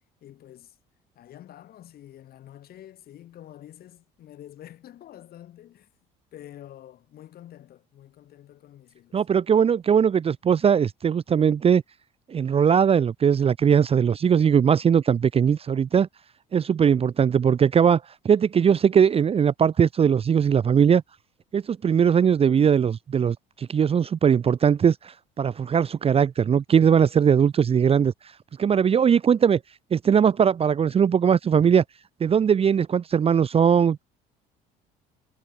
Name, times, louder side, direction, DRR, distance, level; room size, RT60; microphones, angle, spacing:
voice 1, 0.2-0.8 1.2-5.9 6.3-9.2, left 12 dB, 55° left, 7.2 m, -47 dB
voice 2, 9.1-11.8 12.3-16.1 16.5-21.0 21.5-28.1 28.6-29.6 29.9-31.8 32.2-34.0, right 7 dB, 35° right, 0.8 m, -20 dB
supercardioid pair, 90°, 18 cm